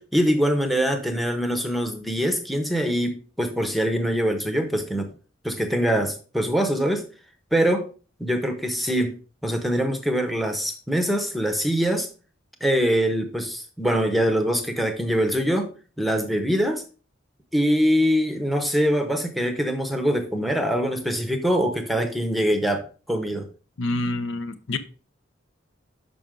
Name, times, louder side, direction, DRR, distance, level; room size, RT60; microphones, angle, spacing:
voice 1, 0.0-5.1 5.4-7.0 7.5-7.8 8.2-9.1 9.4-12.1 12.6-15.7 16.0-16.8 17.5-23.5, equal, ahead, 0.8 m, -23 dB
voice 2, 23.8-24.8, left 2 dB, 70° left, 0.6 m, -27 dB
6.1 x 5.5 x 3.7 m
head